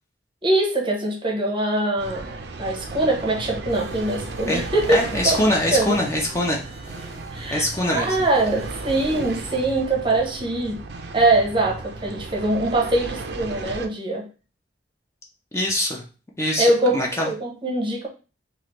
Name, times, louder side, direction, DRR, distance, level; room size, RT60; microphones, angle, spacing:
voice 1, 0.4-5.4 5.7-6.0 7.3-10.8 11.1-14.3 16.6-17.0 17.2-18.1, right 2 dB, 30° right, -1 dB, 0.7 m, -23 dB
sound 1, 2.0-13.9, right 3 dB, 65° right, 0.4 m, -35 dB
sound 2, 3.7-9.6, right 1 dB, 5° right, 1.0 m, -46 dB
voice 2, 4.9-6.6 7.5-8.2 15.5-16.1 16.4-17.3, left 1 dB, 15° left, -1 dB, 0.5 m, -23 dB
3.2 x 2.4 x 2.9 m, 0.35 s
head